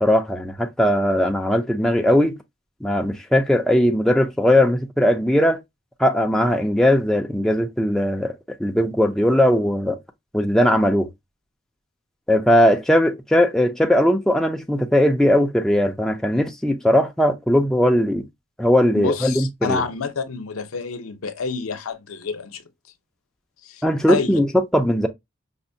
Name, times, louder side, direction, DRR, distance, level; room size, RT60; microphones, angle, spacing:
voice 1, 0.0-2.4 2.8-5.6 6.0-10.0 10.3-11.1 12.3-18.3 18.6-19.8 23.8-24.5 24.7-25.1, left 1 dB, ahead, 0.3 m, -19 dB
voice 2, 18.9-22.6 23.6-24.4, left 5 dB, 80° left, 0.6 m, -28 dB
5.1 x 2.1 x 2.6 m
head